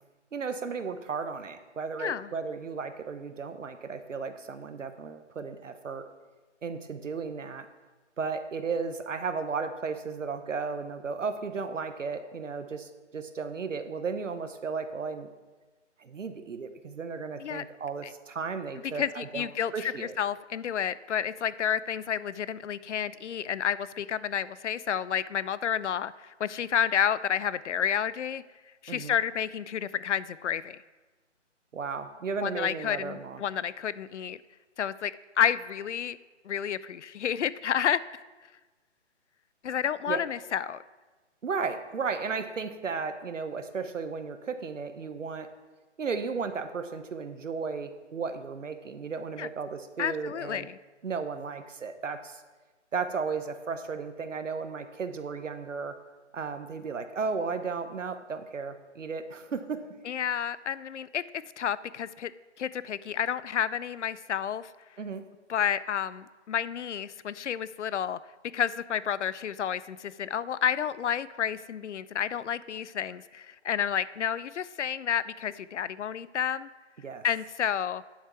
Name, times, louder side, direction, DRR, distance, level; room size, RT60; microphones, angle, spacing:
voice 1, 0.3-6.1 6.6-7.7 8.2-15.3 16.0-20.2 28.9-29.2 31.7-33.4 40.1-40.2 41.4-45.5 46.0-50.7 51.0-52.4 52.9-56.0 56.3-60.0 65.0-65.2 77.0-77.2, right 5 dB, 85° right, 9 dB, 1.1 m, -34 dB
voice 2, 2.0-2.3 17.4-17.6 18.0-18.1 18.9-28.4 28.8-30.8 32.4-34.4 34.8-36.2 36.4-38.0 39.6-40.8 49.4-49.5 50.0-50.8 60.1-61.2 61.6-62.3 62.6-64.7 65.5-68.2 68.5-76.7 77.2-78.0, left 9 dB, 70° left, 18 dB, 0.5 m, -30 dB
9.6 x 7.3 x 4.6 m, 1.3 s
hypercardioid pair, 165°, 37 cm